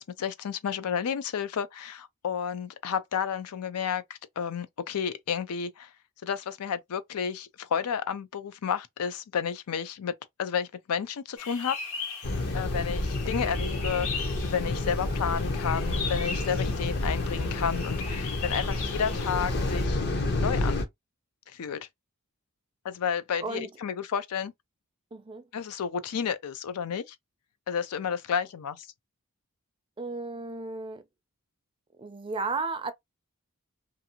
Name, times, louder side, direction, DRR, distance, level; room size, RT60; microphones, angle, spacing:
voice 1, 0.0-5.9 6.2-11.8 12.5-20.0 20.4-20.8 21.5-21.9 22.8-24.5 25.5-27.2 27.7-28.9, left 7 dB, 90° left, 0.4 m, -31 dB
sound 1, 11.4-19.8, left 5 dB, 70° left, 1.1 m, -39 dB
sound 2, 12.2-20.8, left 2 dB, 50° left, 0.6 m, -29 dB
voice 2, 23.4-23.7 25.1-25.5 30.0-31.0 32.0-32.9, right 3 dB, 25° right, 0.4 m, -34 dB
2.6 x 2.3 x 2.8 m
head